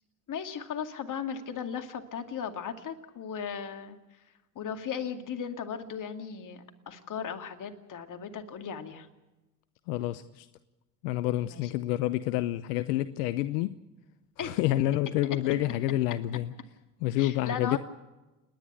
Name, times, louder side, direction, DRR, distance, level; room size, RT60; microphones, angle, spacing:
voice 1, 0.3-4.0 4.6-9.1 11.5-11.6 14.4-14.6 17.2-17.8, left 7 dB, 40° left, 2.3 m, -36 dB
voice 2, 9.9-10.5 11.0-13.8 14.4-16.5 17.0-17.8, left 15 dB, 75° left, 0.8 m, -28 dB
29.0 x 10.5 x 8.9 m
hypercardioid pair, 80°, 47 cm